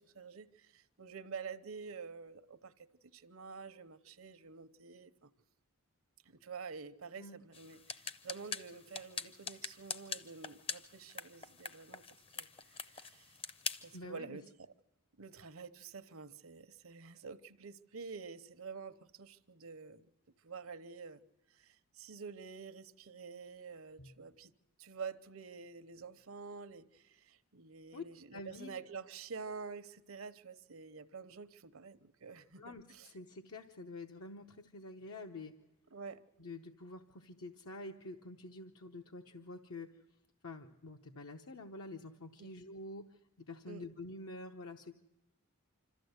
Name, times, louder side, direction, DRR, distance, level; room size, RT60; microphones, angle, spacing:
voice 1, 0.0-5.3 6.2-13.4 13.8-14.7 15.2-20.1 20.4-21.2 21.5-24.5 24.8-33.1 35.9-36.2 42.4-42.5 43.7-43.8, right 5 dB, 70° right, 0.8 m, -48 dB
sound 1, 7.5-14.0, left 5 dB, 25° left, 0.6 m, -44 dB
voice 2, 13.9-14.4 24.0-24.1 27.9-28.0 28.3-28.7 32.6-35.5 36.4-39.9 40.4-44.9, left 2 dB, 70° left, 0.9 m, -48 dB
26.0 x 14.0 x 8.0 m
head